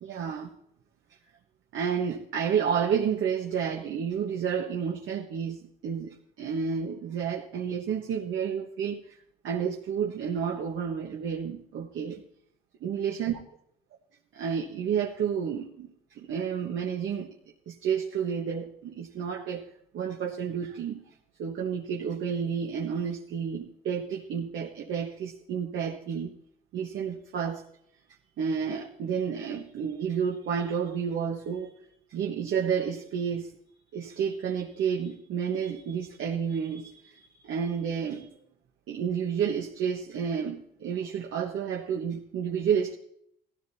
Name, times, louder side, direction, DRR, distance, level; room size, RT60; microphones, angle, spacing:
voice 1, 0.0-0.5 1.7-9.2 9.4-12.2 12.8-13.4 14.3-17.3 17.7-19.6 19.9-21.0 21.4-26.3 26.7-27.6 28.4-31.8 32.1-33.5 33.9-38.3 38.9-42.9, right 7 dB, 80° right, 1 dB, 1.4 m, -30 dB
17.5 x 14.0 x 2.8 m, 0.71 s
cardioid pair, 90°, 20 cm